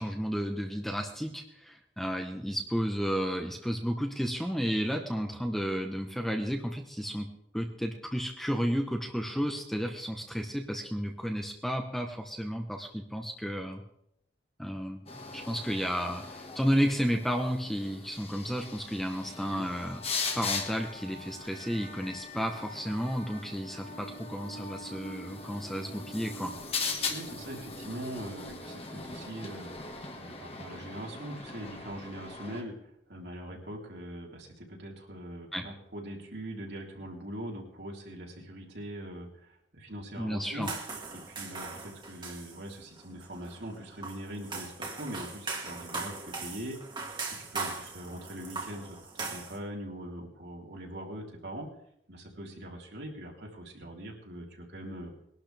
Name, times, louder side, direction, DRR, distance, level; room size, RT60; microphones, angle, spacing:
voice 1, 0.0-7.3 7.5-13.8 14.6-20.0 20.3-26.5 35.5-35.6 40.2-40.7, equal, ahead, 3 dB, 1.1 m, -32 dB
sound 1, 15.1-32.6, left 4 dB, 30° left, 1.8 m, -40 dB
voice 2, 27.0-40.7 41.1-46.1 46.4-46.8 47.3-51.7 52.1-55.1, right 1 dB, 65° right, -1 dB, 3.7 m, -42 dB
sound 2, 40.6-49.6, right 4 dB, 25° right, 2.1 m, -40 dB
22.0 x 12.0 x 3.5 m, 0.74 s
head